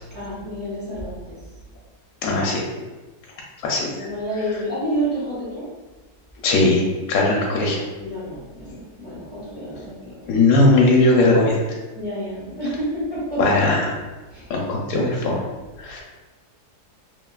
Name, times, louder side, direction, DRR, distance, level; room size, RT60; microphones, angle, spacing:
voice 1, 0.1-1.4 4.0-5.7 8.0-10.1 11.9-13.6 14.3-14.5, right 1 dB, 30° right, -9 dB, 0.8 m, -29 dB
voice 2, 2.2-2.6 3.6-3.9 6.4-6.8 7.1-7.8 10.3-11.6 13.4-13.9 14.5-15.4 15.8-16.0, left 2 dB, 75° left, -2 dB, 1.1 m, -18 dB
3.2 x 2.2 x 2.4 m, 1.2 s
omnidirectional pair, 1.7 m